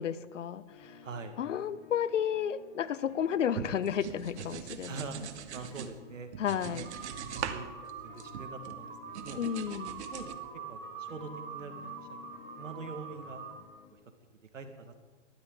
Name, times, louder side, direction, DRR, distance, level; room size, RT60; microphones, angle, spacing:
voice 1, 0.0-1.0 1.4-5.0 6.4-6.9 9.4-10.0, left 9 dB, 80° left, 17 dB, 1.0 m, -32 dB
sound 1, 0.7-13.9, left 7 dB, 30° left, 1.9 m, -54 dB
voice 2, 1.0-1.4 4.9-6.3 6.7-7.7 8.0-9.4 10.1-11.7 12.6-13.4 14.5-15.0, right 4 dB, 85° right, 7 dB, 2.2 m, -44 dB
sound 2, 3.6-5.9 6.3-7.6 7.9-8.8 9.1-10.3, right 9 dB, 65° right, 1.4 m, -41 dB
sound 3, 6.8-13.5, right 6 dB, 35° right, 3.3 m, -45 dB
20.5 x 14.0 x 4.0 m, 1.3 s
hypercardioid pair, 125°, 37 cm